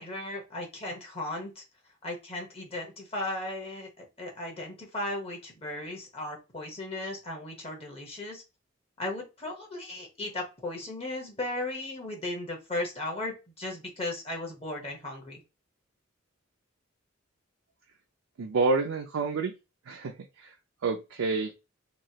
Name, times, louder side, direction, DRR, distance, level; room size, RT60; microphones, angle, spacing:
voice 1, 0.0-1.6 2.0-8.4 9.0-15.4, left 2 dB, 30° left, 0 dB, 0.9 m, -36 dB
voice 2, 18.4-19.6 19.9-20.5 20.8-21.5, right 4 dB, 80° right, 2 dB, 0.4 m, -28 dB
3.0 x 2.3 x 2.8 m, 0.26 s
head